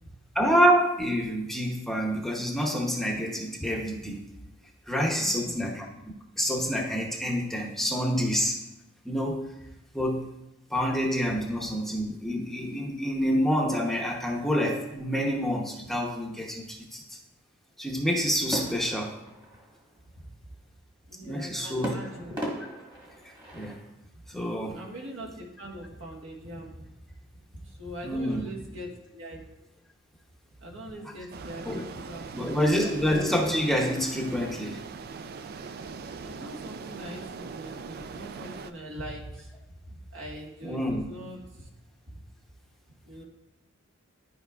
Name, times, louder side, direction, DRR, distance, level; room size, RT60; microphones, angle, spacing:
voice 1, 0.3-4.2 4.9-8.6 9.0-9.4 9.9-10.3 10.7-17.2 17.8-19.2 21.2-21.9 22.3-22.4 23.5-23.8 24.3-24.8 28.0-28.5 31.6-31.9 32.3-34.8 40.6-41.1, equal, ahead, -1 dB, 0.8 m, -27 dB
voice 2, 5.2-5.7 20.2-20.3 21.1-22.4 24.3-24.4 24.7-26.8 27.6-29.4 30.6-32.8 36.2-39.5 39.8-41.7 42.1-42.2 43.0-43.2, right 1 dB, 65° right, -2 dB, 1.4 m, -42 dB
sound 1, 18.5-20.1 21.8-23.9, equal, 25° right, 1.5 m, -37 dB
sound 2, 31.3-38.7, right 5 dB, 50° right, 0.3 m, -41 dB
12.0 x 4.8 x 2.4 m, 0.92 s
head